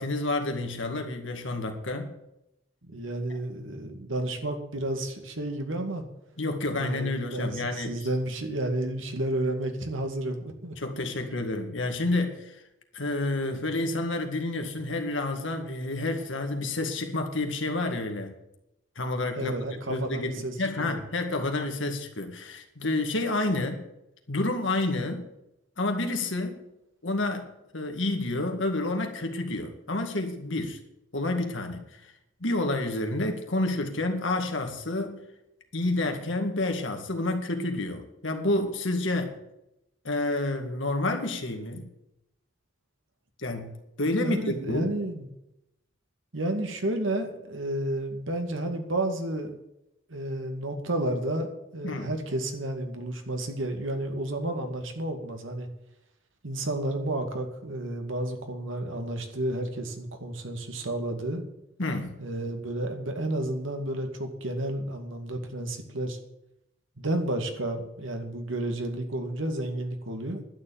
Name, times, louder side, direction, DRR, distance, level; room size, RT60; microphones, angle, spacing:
voice 1, 0.0-2.1 6.4-8.1 10.8-12.6 12.9-18.3 19.0-23.8 24.3-25.3 25.8-26.6 27.0-30.8 31.1-32.1 32.4-35.2 35.7-39.3 40.0-41.8 43.4-44.9 51.8-52.1 61.8-62.2, left 2 dB, 75° left, 4 dB, 2.1 m, -29 dB
voice 2, 2.9-6.0 6.7-10.7 19.4-21.0 44.2-45.2 46.3-49.6 50.1-51.5 51.7-55.7 56.4-61.4 62.2-66.2 67.0-70.4, right 1 dB, 85° right, 5 dB, 2.1 m, -31 dB
11.5 x 7.2 x 9.2 m, 0.85 s
head